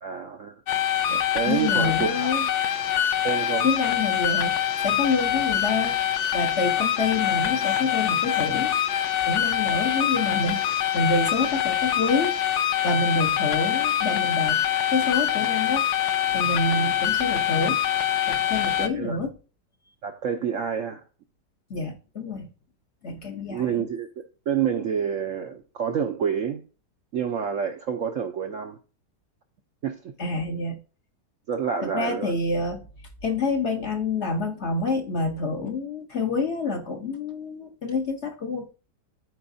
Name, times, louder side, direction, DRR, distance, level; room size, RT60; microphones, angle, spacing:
voice 1, 0.0-0.5 1.3-2.3 3.2-3.7 10.2-10.3 16.7-16.9 18.8-19.2 20.0-21.0 23.5-24.1 24.5-26.6 27.1-28.8 29.8-30.1 31.5-32.3, right 7 dB, 65° right, 0.8 m, -28 dB
sound 1, 0.7-18.9, left 10 dB, 80° left, 0.6 m, -24 dB
voice 2, 1.1-2.4 3.6-4.6 4.8-6.0 6.3-8.8 9.2-10.6 10.9-12.4 12.8-14.6 14.9-15.9 16.3-17.8 18.3-19.3 21.7-22.5 23.0-23.9 30.2-30.8 31.8-32.9 33.2-38.7, left 3 dB, 50° left, 0.9 m, -27 dB
12.5 x 4.6 x 2.6 m
omnidirectional pair, 1.9 m